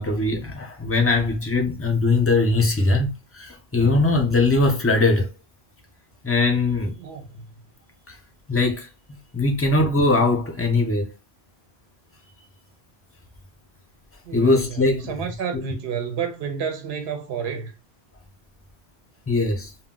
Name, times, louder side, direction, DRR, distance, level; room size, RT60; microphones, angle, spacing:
voice 1, 0.0-5.3 6.2-6.9 8.1-8.2 8.5-8.9 9.3-11.1 14.3-15.3 19.3-19.7, left 3 dB, 20° left, 0.4 m, -21 dB
voice 2, 7.0-7.4 14.2-17.7, right 7 dB, 75° right, 0.8 m, -30 dB
2.1 x 2.1 x 3.6 m
omnidirectional pair, 1.1 m